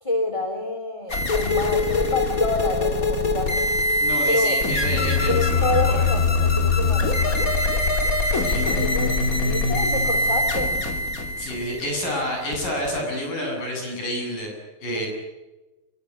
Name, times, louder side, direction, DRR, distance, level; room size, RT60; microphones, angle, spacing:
voice 1, 0.0-3.6 4.3-4.6 5.3-7.4 8.3-10.8, left 2 dB, 10° left, 4 dB, 3.0 m, -28 dB
sound 1, 1.1-13.0, left 2 dB, 25° left, 2.3 m, -22 dB
voice 2, 4.0-6.1 8.4-8.7 11.4-14.5 14.8-15.1, equal, 55° left, 2 dB, 9.4 m, -29 dB
26.0 x 23.5 x 9.4 m, 1.1 s
omnidirectional pair, 4.7 m